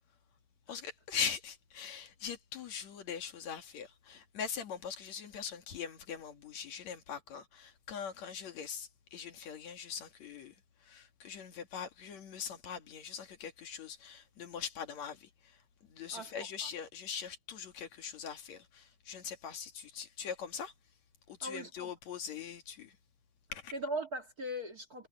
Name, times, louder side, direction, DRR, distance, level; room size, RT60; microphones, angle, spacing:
voice 1, 0.7-10.5 10.8-20.7 21.3-23.0 23.5-23.7, left 7 dB, 70° left, 3.1 m, -42 dB
voice 2, 16.1-16.7 21.4-21.9 23.7-25.1, right 1 dB, 35° right, 2.2 m, -40 dB
omnidirectional pair, 3.4 m